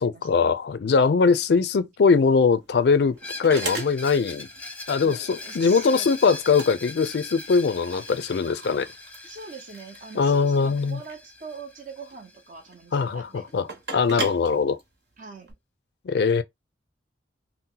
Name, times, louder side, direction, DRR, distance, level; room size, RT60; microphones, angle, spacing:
voice 1, 0.0-4.5 4.9-8.9 10.2-11.0 12.9-14.8 16.0-16.4, left 5 dB, 65° left, 0.4 m, -21 dB
sound 1, 2.2-15.5, right 3 dB, 70° right, 1.0 m, -40 dB
Screech, 3.2-12.8, left 2 dB, 10° left, 0.5 m, -41 dB
voice 2, 5.0-6.3 9.2-13.5 15.2-15.6, right 4 dB, 45° right, 0.6 m, -43 dB
2.8 x 2.1 x 3.7 m
head